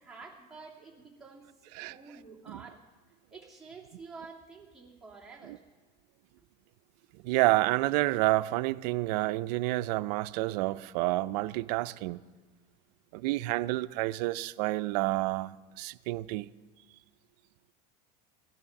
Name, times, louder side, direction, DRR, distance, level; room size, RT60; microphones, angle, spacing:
voice 1, 0.0-2.8 3.3-5.6 6.4-6.5, right 4 dB, ahead, 2.5 m, -49 dB
voice 2, 7.2-12.2 13.1-16.5, right 18 dB, 75° right, 0.5 m, -29 dB
17.0 x 12.5 x 5.8 m
supercardioid pair, 140°, 21 cm